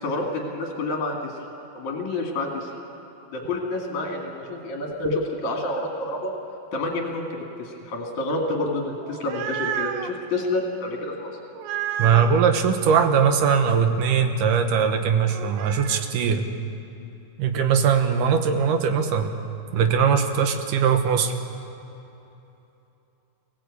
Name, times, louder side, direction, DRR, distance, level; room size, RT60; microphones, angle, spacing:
voice 1, 0.0-1.3 1.7-2.7 3.3-6.3 6.7-11.3, left 2 dB, 55° left, 0 dB, 3.3 m, -28 dB
sound 1, 9.0-10.1 11.6-12.5 15.3-16.1, right 10 dB, 85° right, 2.7 m, -31 dB
voice 2, 12.0-16.5 17.4-19.3 19.7-21.3, right 6 dB, 70° right, 6 dB, 2.5 m, -20 dB
24.5 x 17.0 x 8.3 m, 2.9 s
omnidirectional pair, 4.2 m